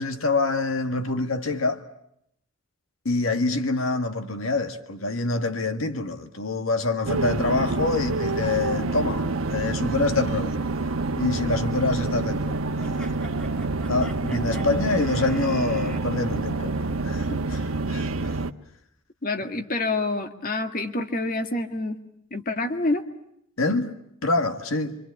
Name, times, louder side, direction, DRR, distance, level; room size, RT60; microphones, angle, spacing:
voice 1, 0.0-1.8 3.1-9.2 9.5-10.6 11.2-13.1 13.9-16.8 17.0-18.4 23.6-24.0 24.2-25.0, left 3 dB, 80° left, 1.8 m, -26 dB
sound 1, 7.1-18.5, right 3 dB, 85° right, 1.0 m, -27 dB
sound 2, 12.8-16.0, right 2 dB, 5° left, 2.3 m, -43 dB
voice 2, 19.2-22.0 22.3-23.0, left 2 dB, 45° left, 1.8 m, -27 dB
27.0 x 25.0 x 8.4 m
head